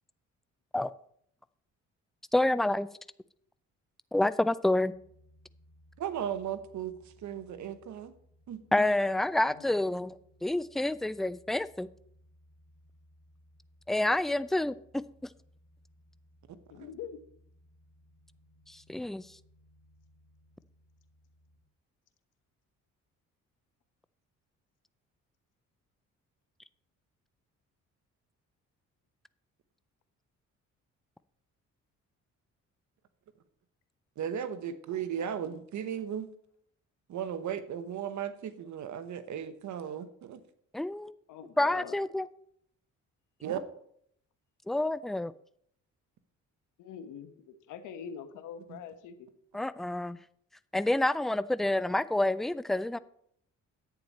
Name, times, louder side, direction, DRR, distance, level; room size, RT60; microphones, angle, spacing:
voice 1, 2.3-2.9 4.1-4.9 8.7-11.9 13.9-14.8 18.7-19.3 40.7-41.1 41.6-42.3 44.7-45.3 49.5-50.2 50.7-53.0, left 1 dB, ahead, 15 dB, 0.3 m, -28 dB
sound 1, 4.9-21.6, equal, 40° left, 2.5 m, -63 dB
voice 2, 6.0-6.9 7.2-8.1 8.5-8.6 16.8-16.9 34.2-36.3 37.1-40.4 43.4-43.6, right 9 dB, 70° right, 11 dB, 1.1 m, -36 dB
voice 3, 16.7-17.2 41.3-42.0 46.8-49.3, left 7 dB, 90° left, 9 dB, 1.2 m, -44 dB
11.0 x 8.8 x 4.2 m, 0.67 s
cardioid pair, 90°, 30 cm